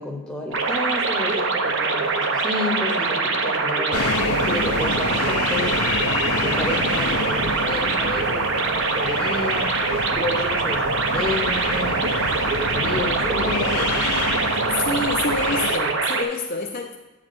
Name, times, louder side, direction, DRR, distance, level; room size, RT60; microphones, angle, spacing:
voice 1, 0.0-4.0 4.4-5.8 6.3-9.8 10.1-14.1, left 1 dB, 5° left, -1 dB, 0.9 m, -31 dB
sound 1, 0.5-16.2, right 4 dB, 55° right, 0.6 m, -23 dB
sound 2, 3.9-15.8, left 4 dB, 90° left, 0.6 m, -29 dB
voice 2, 14.7-17.0, left 3 dB, 40° left, 1 dB, 0.5 m, -27 dB
9.2 x 7.2 x 2.6 m, 1.1 s
head